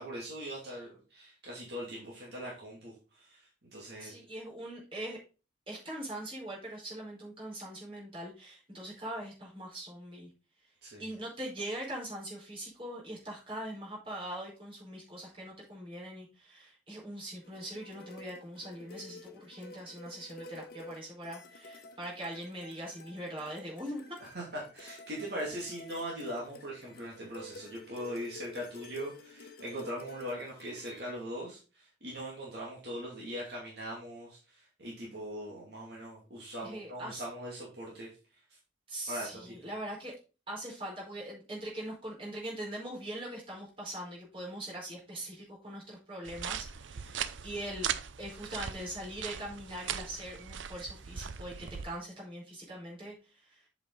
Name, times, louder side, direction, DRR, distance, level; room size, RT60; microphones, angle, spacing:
voice 1, 0.0-4.2 10.8-11.0 24.2-38.1 39.1-39.5 47.1-47.2, equal, 60° right, -4 dB, 2.5 m, -41 dB
voice 2, 4.0-5.2 5.7-10.3 11.0-24.0 36.6-37.2 38.9-40.1 40.5-47.9 48.2-53.6, right 1 dB, 30° right, -4 dB, 4.7 m, -42 dB
sound 1, 17.4-31.1, left 2 dB, 55° left, 1.1 m, -51 dB
sound 2, 46.2-51.8, right 8 dB, 90° right, 0.6 m, -39 dB
7.8 x 5.9 x 4.0 m, 0.33 s
head